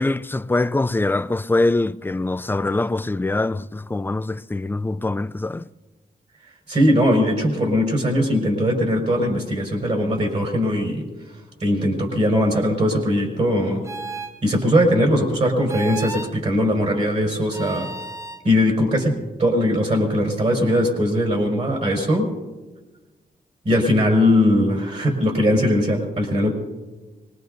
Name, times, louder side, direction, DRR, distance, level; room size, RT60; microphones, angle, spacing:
voice 1, 0.0-5.7, left 2 dB, 10° left, 0.4 m, -23 dB
voice 2, 6.7-11.1 11.6-13.8 14.4-17.9 18.4-19.1 19.4-22.3 23.6-26.5, equal, 45° right, 4.9 m, -20 dB
sound 1, 13.8-14.3 15.7-16.3 17.5-18.4, right 2 dB, 15° right, 0.9 m, -33 dB
24.5 x 20.5 x 2.7 m
cardioid pair, 75°, 17 cm